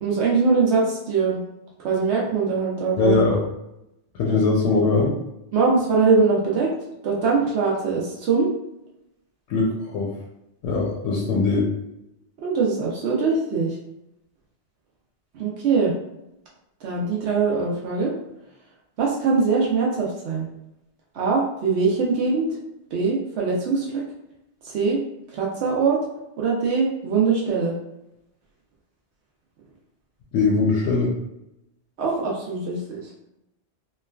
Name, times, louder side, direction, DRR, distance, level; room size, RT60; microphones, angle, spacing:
voice 1, 0.0-1.4 1.8-3.2 5.5-6.7 7.0-8.5 12.4-13.8 15.3-15.9 16.8-18.1 19.0-20.5 21.1-22.6 22.9-24.0 24.6-25.0 25.3-26.0 26.4-27.8 32.0-33.0, right 4 dB, 70° right, -3 dB, 0.8 m, -22 dB
voice 2, 3.0-3.4 4.2-5.1 9.5-10.1 10.6-11.7 30.3-31.1, left 3 dB, 85° left, -2 dB, 0.9 m, -21 dB
3.1 x 2.2 x 2.3 m, 0.87 s
omnidirectional pair, 1.2 m